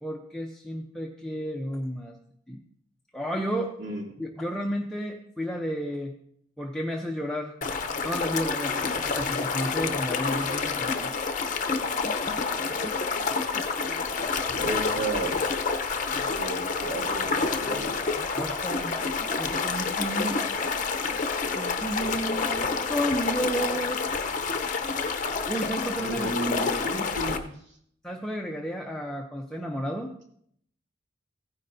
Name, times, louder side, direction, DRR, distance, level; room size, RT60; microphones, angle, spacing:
voice 1, 0.0-2.2 2.5-2.6 3.1-3.7 4.2-6.1 6.6-7.6 8.0-11.1 18.3-19.1 19.4-20.4 21.6-24.0 25.5-26.3 28.0-30.1, equal, 5° left, -1 dB, 0.6 m, -32 dB
sound 1, 7.6-27.4, left 4 dB, 40° left, 0.7 m, -28 dB
voice 2, 12.6-13.2 14.5-15.4 16.4-18.0 26.1-27.5, right 1 dB, 65° right, -1 dB, 2.6 m, -33 dB
15.5 x 9.7 x 2.7 m, 0.67 s
head